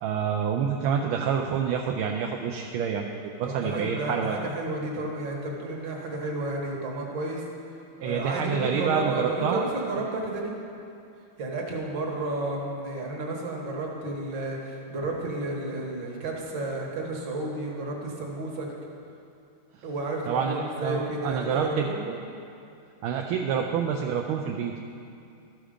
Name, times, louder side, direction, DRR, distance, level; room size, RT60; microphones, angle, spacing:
voice 1, 0.0-4.4 8.0-9.6 20.3-22.2 23.0-24.8, right 7 dB, 75° right, 2 dB, 1.3 m, -28 dB
voice 2, 3.4-7.4 8.0-10.6 11.4-18.7 19.8-22.1, right 2 dB, 60° right, -1 dB, 1.9 m, -32 dB
13.0 x 6.2 x 5.0 m, 2.6 s
omnidirectional pair, 2.4 m